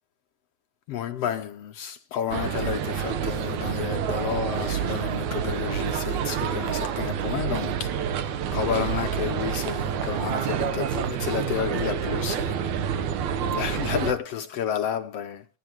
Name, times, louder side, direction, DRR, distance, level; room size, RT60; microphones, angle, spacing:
voice 1, 0.9-12.6 13.5-15.4, left 9 dB, 80° left, 1.4 m, -31 dB
sound 1, 2.3-14.1, right 8 dB, 70° right, 2.2 m, -28 dB
22.0 x 10.0 x 3.0 m
omnidirectional pair, 3.9 m